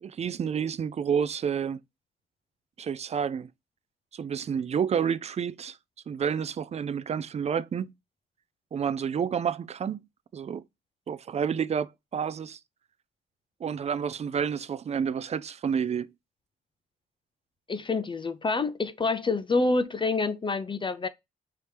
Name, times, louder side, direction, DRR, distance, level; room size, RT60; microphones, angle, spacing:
voice 1, 0.0-1.8 2.8-3.5 4.1-5.8 6.1-7.9 8.7-10.0 10.3-10.6 11.1-12.6 13.6-16.1, right 7 dB, 35° right, 0.4 m, -29 dB
voice 2, 17.7-21.1, left 3 dB, 25° left, 0.5 m, -27 dB
4.8 x 2.8 x 3.3 m
cardioid pair, 90°, 20 cm